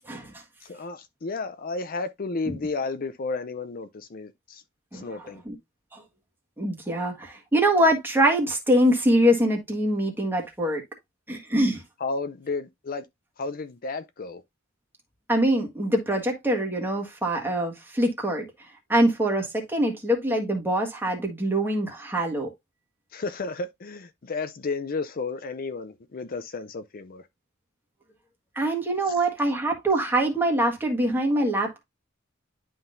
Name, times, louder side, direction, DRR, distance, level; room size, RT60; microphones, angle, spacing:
voice 1, 0.6-4.6 4.9-5.4 12.0-13.1 13.4-14.4 23.1-27.3 29.1-29.2, left 3 dB, 45° left, 0.5 m, -32 dB
voice 2, 6.6-10.8 11.3-11.8 15.3-18.4 18.9-22.5 28.5-31.8, right 1 dB, 10° right, 1.6 m, -24 dB
11.0 x 3.8 x 2.5 m
head